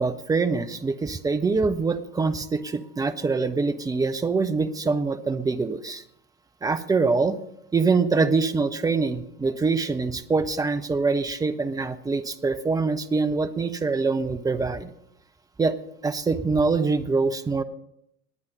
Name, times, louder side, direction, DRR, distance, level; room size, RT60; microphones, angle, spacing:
voice 1, 0.0-6.0 6.6-7.4 7.7-14.9 15.6-15.8 16.0-17.6, right 4 dB, 10° right, 9 dB, 0.5 m, -24 dB
19.0 x 9.5 x 4.0 m, 0.74 s
figure-of-eight pair, 75°, 46 cm